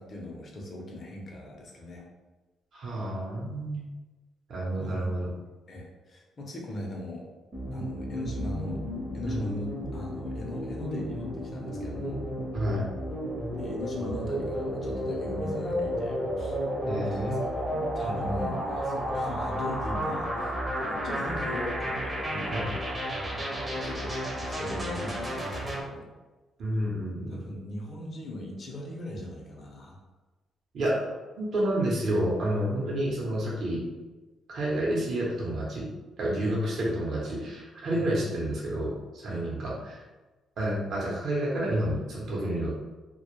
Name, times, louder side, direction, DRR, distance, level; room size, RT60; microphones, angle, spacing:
voice 1, 0.0-2.1 4.7-5.2 5.7-7.3 7.7-8.8 9.1-12.2 13.6-16.6 17.0-22.9 23.5-26.1 27.3-30.0 36.4-36.6 37.9-38.0 39.3-39.4, left 1 dB, 45° left, 0 dB, 0.6 m, -39 dB
voice 2, 2.7-3.9 4.5-5.3 9.3-9.5 12.5-12.9 16.9-17.4 18.0-18.3 22.5-22.7 26.6-27.4 30.7-33.8 34.5-35.9 36.2-40.1 40.6-42.7, right 1 dB, 60° right, -5 dB, 0.7 m, -30 dB
sound 1, 7.5-25.8, equal, 20° right, 0.6 m, -32 dB
2.1 x 2.0 x 3.0 m, 1.2 s
cardioid pair, 90°, 0 cm